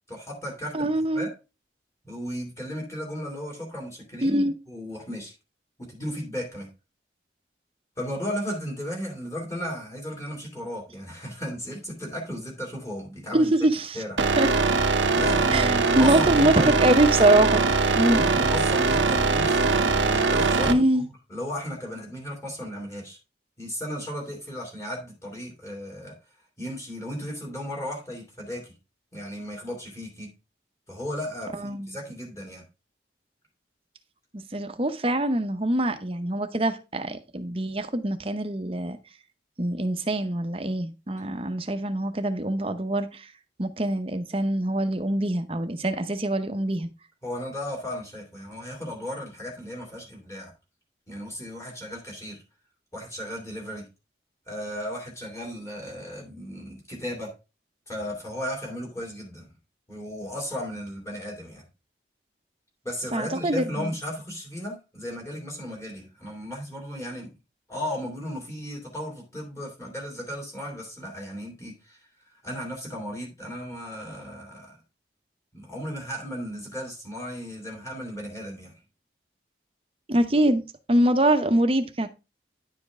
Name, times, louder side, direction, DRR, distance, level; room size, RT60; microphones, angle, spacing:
voice 1, 0.1-1.3 2.0-5.3 5.8-6.7 8.0-13.5 13.9-14.2 15.1-16.8 18.0-23.2 23.6-26.1 26.6-28.7 29.1-30.3 30.9-32.6 47.2-50.5 51.1-52.4 52.9-53.8 54.5-57.3 57.9-59.5 59.9-61.7 62.8-67.3 67.7-74.8 75.5-78.7, equal, 15° left, 2.5 m, -35 dB
voice 2, 0.7-1.3 4.2-4.6 13.3-14.0 14.4-14.5 15.5-17.6 17.9-18.2 20.6-21.1 31.5-31.9 34.3-39.0 39.6-43.3 43.6-46.9 63.1-63.9 80.1-80.6 80.9-82.1, right 1 dB, 30° right, 0.8 m, -24 dB
sound 1, 14.2-20.7, right 4 dB, 85° right, 0.8 m, -22 dB
10.5 x 5.2 x 3.6 m
head